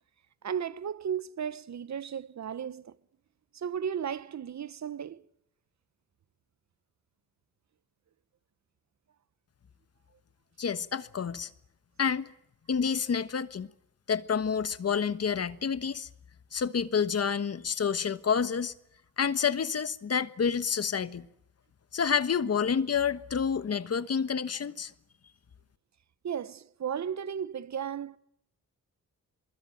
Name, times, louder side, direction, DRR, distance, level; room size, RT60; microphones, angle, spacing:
voice 1, 0.4-3.0 3.5-5.2 26.2-28.2, right 8 dB, 60° right, 1.1 m, -35 dB
voice 2, 10.6-11.5 12.0-12.3 12.7-13.7 14.1-16.1 16.5-18.7 19.2-21.3 21.9-24.9, left 6 dB, 50° left, 1.4 m, -29 dB
23.5 x 22.5 x 9.3 m
cardioid pair, 80°, 32 cm